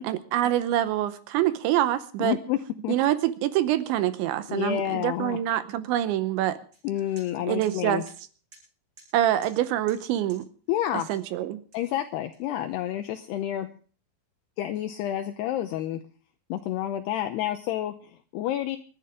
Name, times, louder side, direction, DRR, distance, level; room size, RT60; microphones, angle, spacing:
voice 1, 0.0-2.4 2.9-6.6 7.5-8.0 9.1-10.5 10.9-11.6, right 13 dB, 80° right, 13 dB, 3.0 m, -25 dB
voice 2, 2.2-2.6 2.8-2.9 4.5-5.4 6.8-8.0 10.7-11.1 11.7-13.7 14.6-16.0 16.5-18.8, left 12 dB, 80° left, 7 dB, 2.5 m, -29 dB
sound 1, 6.7-6.8 7.2-7.3 7.6-7.7 8.1-8.2 8.5-8.6 9.0-9.1 9.4-9.6 9.9-10.0 10.3-10.4 11.1-11.3 11.7-12.7, right 3 dB, 20° right, 7.1 m, -52 dB
28.5 x 11.0 x 3.6 m, 0.42 s
omnidirectional pair, 5.6 m